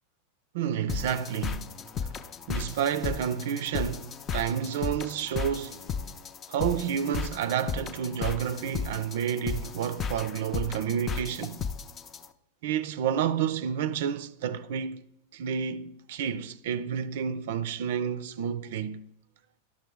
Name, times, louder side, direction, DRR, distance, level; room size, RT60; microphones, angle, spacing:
voice 1, 0.5-1.7 2.5-6.0 6.5-11.6 12.6-15.0 15.3-19.0, right 8 dB, 55° right, 0.4 m, -30 dB
sound 1, 0.9-12.3, left 6 dB, 25° left, 0.5 m, -35 dB
11.0 x 6.6 x 3.5 m
figure-of-eight pair, 90°, 0 cm